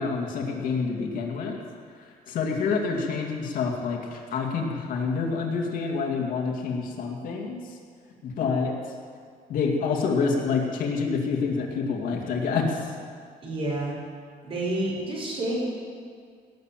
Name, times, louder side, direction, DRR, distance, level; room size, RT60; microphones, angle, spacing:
voice 1, 0.0-1.6 2.3-7.8 8.2-8.7 9.5-12.9, left 5 dB, 65° left, 1 dB, 2.3 m, -27 dB
voice 2, 13.4-13.9 14.4-15.5, right 1 dB, 40° right, -3 dB, 5.3 m, -29 dB
18.0 x 7.4 x 9.1 m, 2.1 s
cardioid pair, 155°, 15 cm